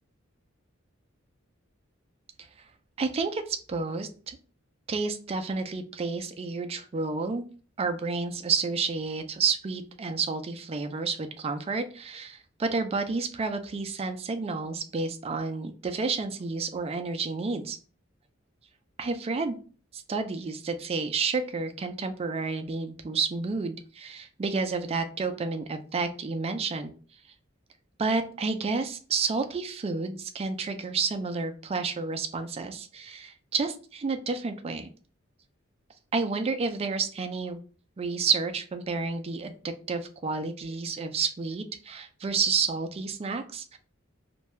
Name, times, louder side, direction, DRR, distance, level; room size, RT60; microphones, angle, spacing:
voice 1, 3.0-4.4 4.9-7.4 7.8-17.8 19.0-19.5 19.9-26.9 28.0-34.9 36.1-37.6 38.0-43.8, right 4 dB, 30° right, 7 dB, 0.4 m, -30 dB
2.6 x 2.2 x 3.1 m, 0.39 s
head